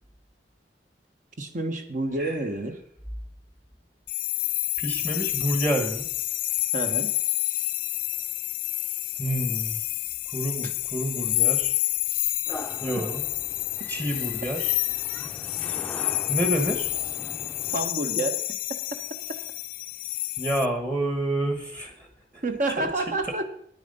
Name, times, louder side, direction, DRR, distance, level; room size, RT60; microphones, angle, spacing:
voice 1, 1.4-2.8 6.7-7.1 10.6-10.7 17.7-18.4 22.4-23.4, right 2 dB, 45° right, 7 dB, 1.3 m, -29 dB
sound 1, 4.1-20.7, left 18 dB, 50° left, 0.4 m, -29 dB
voice 2, 4.8-6.1 9.2-9.8 10.3-11.7 12.8-13.2 13.9-14.7 16.3-16.9 20.4-22.1 22.3-22.4 22.8-22.9, right 1 dB, 20° right, 5 dB, 1.4 m, -28 dB
sound 2, 12.5-17.9, left 1 dB, 10° left, 0.6 m, -41 dB
9.8 x 9.3 x 5.4 m, 0.64 s
head